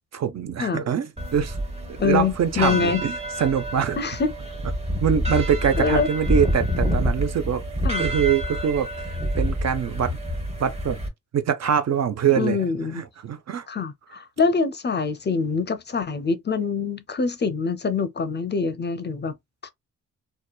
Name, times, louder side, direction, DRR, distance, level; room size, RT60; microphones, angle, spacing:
voice 1, 0.0-1.6 1.9-4.0 5.0-7.6 8.0-10.2 10.6-11.0 11.3-12.6 12.9-13.7, right 8 dB, 60° right, 0.6 m, -24 dB
sound 1, 1.2-11.1, equal, 20° right, 1.0 m, -27 dB
voice 2, 2.0-3.0 4.0-4.3 5.8-6.1 7.8-8.1 12.4-13.0 13.7-19.3 19.6-19.7, left 5 dB, 35° left, 0.5 m, -25 dB
2.8 x 2.2 x 2.3 m
cardioid pair, 75°, 30 cm